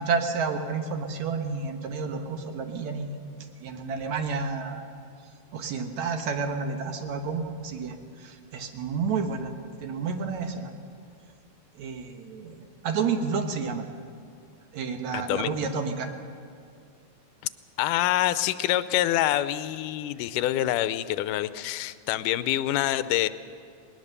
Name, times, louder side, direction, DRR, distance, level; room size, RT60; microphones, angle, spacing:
voice 1, 0.0-3.2 3.6-4.9 5.5-9.5 9.8-10.7 11.8-12.6 12.8-13.8 14.7-16.1, right 5 dB, 65° right, 5 dB, 2.5 m, -30 dB
voice 2, 15.1-15.6 17.8-23.3, left 13 dB, 90° left, 14 dB, 2.2 m, -26 dB
20.0 x 19.5 x 6.8 m, 2.3 s
omnidirectional pair, 3.6 m